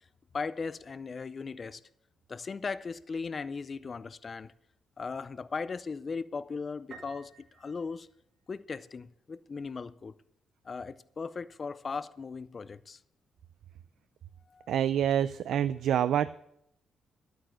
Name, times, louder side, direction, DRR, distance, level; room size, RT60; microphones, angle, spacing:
voice 1, 0.3-1.8 2.3-4.5 5.0-8.1 8.5-10.1 10.6-13.0 14.5-14.7, left 4 dB, 25° left, 0.4 m, -38 dB
Piano, 6.9-8.7, right 5 dB, 50° right, 1.6 m, -53 dB
voice 2, 14.7-16.3, right 10 dB, 65° right, 0.4 m, -27 dB
11.5 x 8.9 x 6.3 m
cardioid pair, 175°, 0 cm